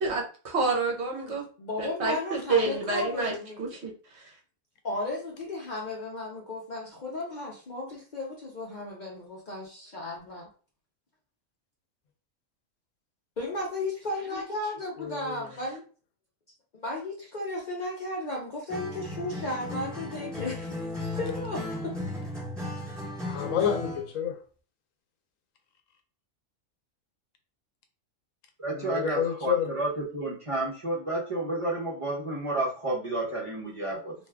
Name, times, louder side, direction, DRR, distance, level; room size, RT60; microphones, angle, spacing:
voice 1, 0.0-1.4 1.8-3.9, right 3 dB, 60° right, 1.0 m, -28 dB
voice 2, 1.2-3.6 4.8-10.5 13.4-15.8 16.7-22.0, left 2 dB, 50° left, 0.6 m, -35 dB
voice 3, 15.0-15.4 23.2-24.4 28.7-29.7, left 9 dB, 80° left, 1.0 m, -29 dB
Acoustic guitar, 18.7-24.1, left 1 dB, ahead, 1.0 m, -35 dB
voice 4, 28.6-34.1, right 2 dB, 30° right, 0.6 m, -31 dB
2.5 x 2.3 x 3.3 m
omnidirectional pair, 1.4 m